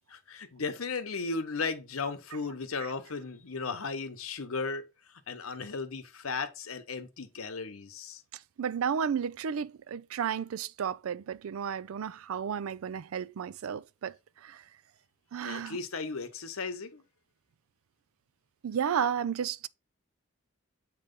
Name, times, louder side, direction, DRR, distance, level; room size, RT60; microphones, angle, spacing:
voice 1, 0.1-4.9 5.3-8.2 15.4-17.0, left 4 dB, 90° left, 0.9 m, -36 dB
voice 2, 8.6-14.1 14.4-14.6 15.3-15.8 18.6-19.6, right 7 dB, 85° right, 0.4 m, -32 dB
7.8 x 3.0 x 5.2 m
head